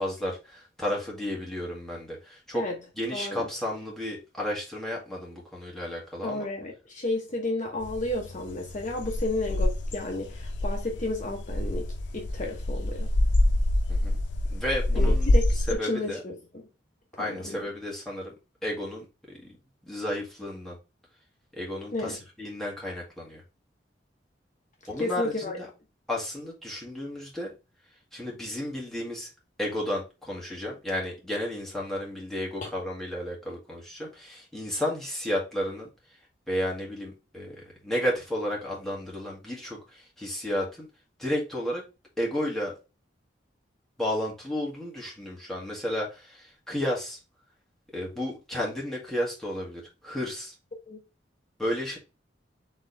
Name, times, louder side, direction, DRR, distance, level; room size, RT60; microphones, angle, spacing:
voice 1, 0.0-2.6 3.0-6.5 13.9-14.2 14.5-15.3 15.7-16.2 17.2-18.3 18.6-19.6 19.8-20.8 21.5-23.4 24.9-25.7 26.1-27.5 28.1-29.3 29.6-35.9 36.5-37.5 37.8-40.9 41.2-41.8 42.2-42.8 44.0-47.2 47.9-50.5 51.6-52.0, left 1 dB, ahead, 1.8 m, -32 dB
voice 2, 3.1-3.5 6.2-13.1 14.9-15.4 15.7-16.6 17.2-17.7 21.9-22.2 24.9-25.6 32.6-32.7 50.9-51.0, left 2 dB, 45° left, 0.8 m, -32 dB
sound 1, 7.8-15.7, left 1 dB, 75° left, 0.6 m, -26 dB
4.3 x 3.6 x 3.3 m
head